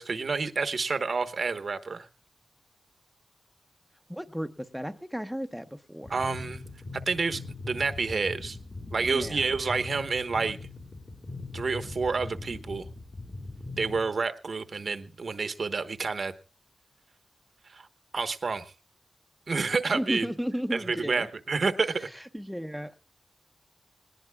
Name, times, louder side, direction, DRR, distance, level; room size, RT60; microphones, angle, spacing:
voice 1, 0.0-2.1 6.1-6.6 7.1-8.6 8.9-10.6 11.5-12.8 13.8-16.3 17.7-17.9 18.1-18.7 19.5-20.3 20.7-22.1, right 4 dB, 60° right, 1.1 m, -29 dB
voice 2, 4.1-6.1 9.0-9.4 19.9-21.3 22.0-23.0, equal, ahead, 0.8 m, -34 dB
sound 1, 6.0-14.0, left 3 dB, 40° left, 1.8 m, -41 dB
19.5 x 19.5 x 2.3 m
wide cardioid pair, 90°, 0 cm